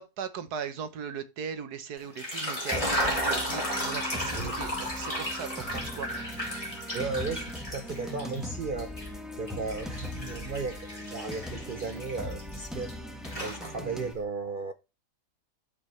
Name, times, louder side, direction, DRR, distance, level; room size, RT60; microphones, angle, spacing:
voice 1, 0.0-6.1 6.4-6.5, right 7 dB, 80° right, 1.6 m, -38 dB
sound 1, 2.0-8.4 8.8-12.9 13.2-14.1, equal, 20° left, 3.4 m, -34 dB
sound 2, 2.7-14.1, left 1 dB, ahead, 1.2 m, -40 dB
voice 2, 6.9-9.0 9.4-13.0 13.4-14.7, right 4 dB, 60° right, 0.5 m, -35 dB
13.5 x 5.4 x 3.2 m
omnidirectional pair, 1.7 m